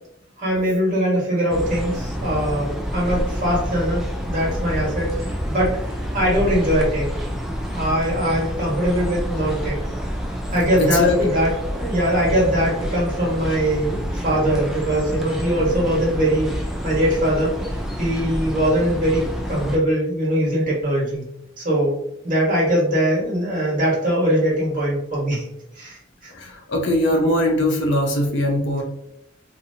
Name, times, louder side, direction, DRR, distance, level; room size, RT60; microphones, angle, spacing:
voice 1, 0.4-5.1 5.5-5.7 6.1-7.1 7.7-9.8 10.5-16.5 16.8-17.5 18.0-19.2 19.5-21.2 21.6-21.9 22.2-25.4 25.8-26.3, equal, 45° right, -5 dB, 1.4 m, -21 dB
sound 1, 1.5-19.8, equal, ahead, 0.4 m, -28 dB
voice 2, 10.8-11.2 26.3-28.8, left 1 dB, 65° left, 0 dB, 0.6 m, -21 dB
2.8 x 2.6 x 2.7 m, 0.78 s
head